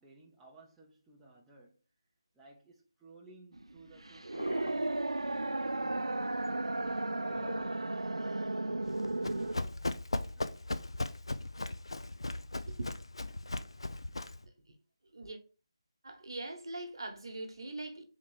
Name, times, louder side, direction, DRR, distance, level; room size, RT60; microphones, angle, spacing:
voice 1, 0.0-1.8 2.3-10.5, right 2 dB, 5° right, 0.5 m, -59 dB
sound 1, 3.5-9.6, right 2 dB, 80° right, 0.3 m, -34 dB
sound 2, 4.3-5.1 7.2-8.3 9.0-9.1, left 1 dB, 90° left, 0.8 m, -45 dB
Run, 8.9-14.5, left 2 dB, 70° left, 0.4 m, -37 dB
voice 2, 15.0-15.4 16.0-18.0, right 2 dB, 55° right, 1.1 m, -41 dB
3.7 x 3.0 x 4.7 m
figure-of-eight pair, 155°, 3 cm